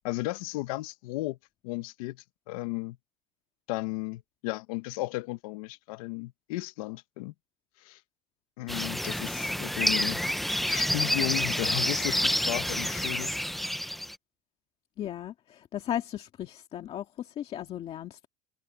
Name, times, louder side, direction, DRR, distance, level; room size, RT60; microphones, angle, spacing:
voice 1, 0.0-1.4 1.6-3.0 3.7-7.3 7.8-8.0 8.6-10.2 10.6-13.3, left 20 dB, 80° left, 1.3 m, -34 dB
sound 1, 8.7-14.1, equal, ahead, 0.6 m, -28 dB
voice 2, 15.0-18.3, left 11 dB, 30° left, 1.9 m, -36 dB
cardioid pair, 155°, 18 cm